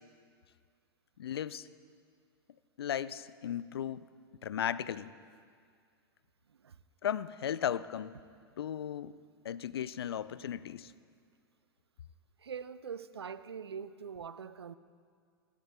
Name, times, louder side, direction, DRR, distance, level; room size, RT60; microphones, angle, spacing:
voice 1, 1.2-1.7 2.8-4.1 4.4-5.1 7.0-8.1 8.6-9.1 9.4-10.9, left 9 dB, 75° left, 17 dB, 0.4 m, -36 dB
voice 2, 12.4-14.8, right 7 dB, 85° right, 15 dB, 0.4 m, -43 dB
19.5 x 17.0 x 2.2 m, 2.1 s
hypercardioid pair, 100°, 13 cm